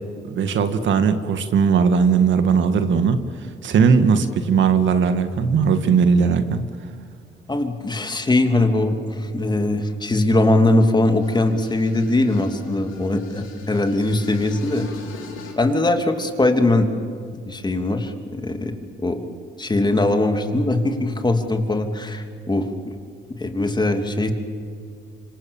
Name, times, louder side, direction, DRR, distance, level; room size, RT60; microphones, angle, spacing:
voice 1, 0.3-3.2 3.6-6.6, right 6 dB, 70° right, 9 dB, 1.9 m, -18 dB
voice 2, 7.5-14.9 15.6-16.9 17.4-18.8 19.0-19.2 19.6-22.7 23.4-24.3, left 2 dB, 20° left, 5 dB, 3.1 m, -21 dB
sound 1, 11.1-15.5, left 6 dB, 90° left, 4.3 m, -41 dB
26.5 x 25.5 x 7.3 m, 2.3 s
cardioid pair, 90°, 20 cm